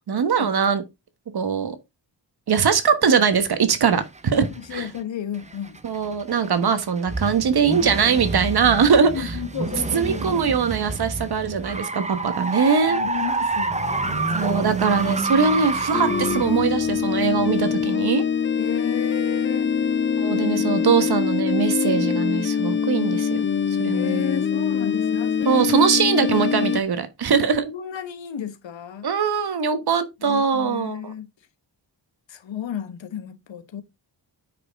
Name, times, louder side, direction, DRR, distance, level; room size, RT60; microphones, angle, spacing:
voice 1, 0.1-0.8 1.3-1.8 2.5-4.9 5.8-9.3 9.6-13.0 14.3-18.2 20.2-23.4 23.8-24.2 25.4-27.7 29.0-31.1, right 6 dB, 60° right, 1.3 m, -21 dB
sound 1, 3.8-5.0 5.4-18.0, right 3 dB, 15° right, 0.8 m, -28 dB
voice 2, 4.3-5.8 9.1-10.4 12.9-14.5 18.6-19.7 23.9-25.7 27.7-29.1 30.2-31.3 32.3-33.8, left 9 dB, 90° left, 1.2 m, -33 dB
sound 2, 15.9-26.8, left 7 dB, 30° left, 0.4 m, -23 dB
9.2 x 5.3 x 3.6 m
wide cardioid pair, 145°, 44 cm